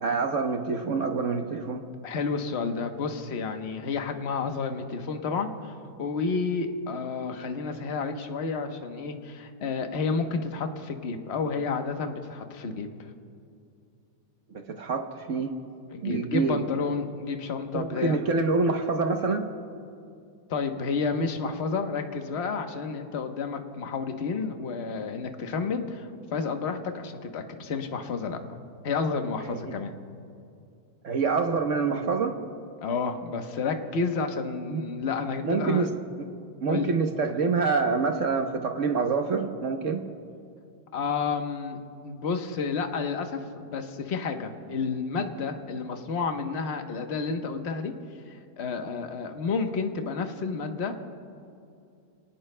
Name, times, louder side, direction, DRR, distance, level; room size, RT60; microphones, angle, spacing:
voice 1, 0.0-1.8 14.5-15.5 16.0-16.6 17.7-19.4 29.5-29.7 31.0-32.4 34.7-34.8 35.4-35.9 36.6-40.0, right 4 dB, 50° right, 5 dB, 1.1 m, -26 dB
voice 2, 2.0-12.9 15.9-18.2 20.5-28.4 28.8-29.9 32.8-35.8 36.7-36.9 40.9-41.8 42.0-47.9 48.3-51.0, left 4 dB, 45° left, 5 dB, 1.1 m, -30 dB
29.5 x 18.5 x 2.2 m, 2.5 s
omnidirectional pair, 1.9 m